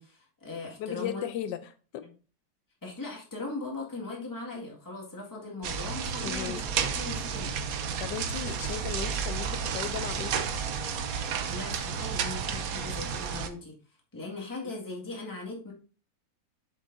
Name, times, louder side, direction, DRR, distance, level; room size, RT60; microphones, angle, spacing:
voice 1, 0.0-1.3 2.0-2.1 2.8-7.5 11.5-13.8 14.1-15.7, left 3 dB, 10° left, -2 dB, 1.9 m, -39 dB
voice 2, 0.8-1.6 1.9-2.0 6.2-6.6 8.0-10.4, left 10 dB, 85° left, 11 dB, 1.3 m, -36 dB
sound 1, 5.6-13.5, right 6 dB, 60° right, 1.1 m, -32 dB
7.8 x 6.7 x 2.7 m, 0.37 s
omnidirectional pair, 1.8 m